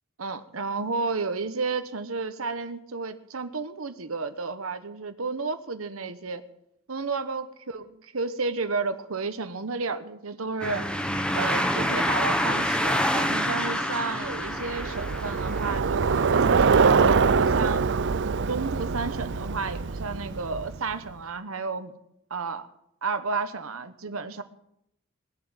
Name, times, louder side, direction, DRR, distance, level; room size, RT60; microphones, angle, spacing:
voice 1, 0.2-6.4 6.9-10.9 11.3-17.8 18.5-22.0 22.3-22.7 23.0-24.4, right 4 dB, 85° right, 10 dB, 1.2 m, -32 dB
sound 1, 10.6-15.8, equal, 5° left, 1.3 m, -27 dB
Bicycle, 14.4-20.9, right 5 dB, 60° right, 0.5 m, -24 dB
20.0 x 7.7 x 8.9 m, 0.77 s
head